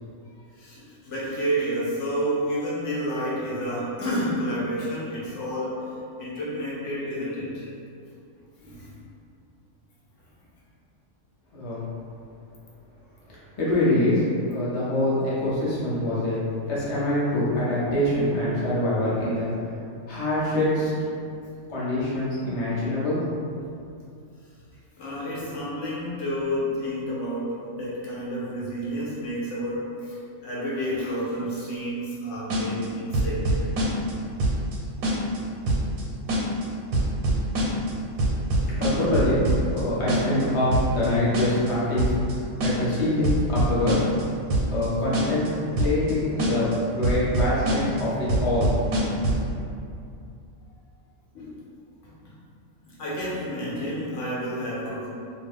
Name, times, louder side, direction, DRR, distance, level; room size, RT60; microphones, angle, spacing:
voice 1, 0.6-5.8 6.2-7.7 8.6-8.9 25.0-33.7 51.3-51.5 52.0-52.3 52.9-55.1, equal, 65° left, -7 dB, 0.9 m, -30 dB
voice 2, 11.5-11.8 13.6-19.5 20.1-21.1 21.7-23.2 38.3-38.4 38.8-39.4 39.7-42.0 42.6-44.1 44.7-45.5 45.8-48.7, left 1 dB, 35° left, -9 dB, 0.6 m, -25 dB
sound 1, 32.5-32.9 33.1-34.1 34.4-34.8 35.0-35.4 35.7-36.0 36.3-36.6 36.9-37.9 38.2-39.8 40.1-40.4 40.7-41.1 41.3-41.7 42.0-42.3 42.6-43.0 43.2-44.2 44.5-44.9 45.1-45.5 45.8-46.1 46.4-46.8 47.0-48.0 48.3-49.5, right 1 dB, 90° right, 1.1 m, -23 dB
2.5 x 2.3 x 3.2 m, 2.5 s
omnidirectional pair, 1.5 m